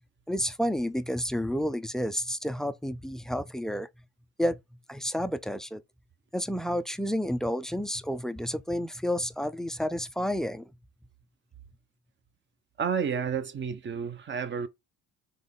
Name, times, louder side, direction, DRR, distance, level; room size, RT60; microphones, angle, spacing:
voice 1, 0.3-3.9 4.4-4.6 4.9-5.8 6.3-10.7, equal, ahead, 0.3 m, -30 dB
voice 2, 12.8-14.7, right 6 dB, 35° right, 0.7 m, -30 dB
4.0 x 3.0 x 3.6 m
cardioid pair, 95°, 32 cm